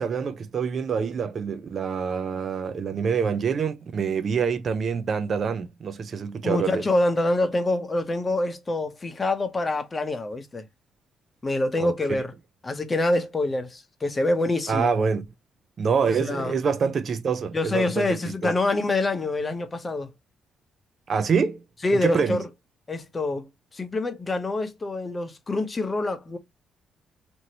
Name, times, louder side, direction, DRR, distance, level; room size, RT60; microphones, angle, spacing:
voice 1, 0.0-6.9 11.8-11.9 14.7-15.2 15.8-18.5 21.1-21.6 21.9-22.4, right 6 dB, 50° right, 0.6 m, -26 dB
voice 2, 6.4-10.6 11.4-12.3 12.6-14.9 16.2-16.6 17.5-20.1 21.8-22.5 22.9-26.4, left 2 dB, 25° left, 0.8 m, -26 dB
2.9 x 2.7 x 2.7 m
cardioid pair, 90°, 0 cm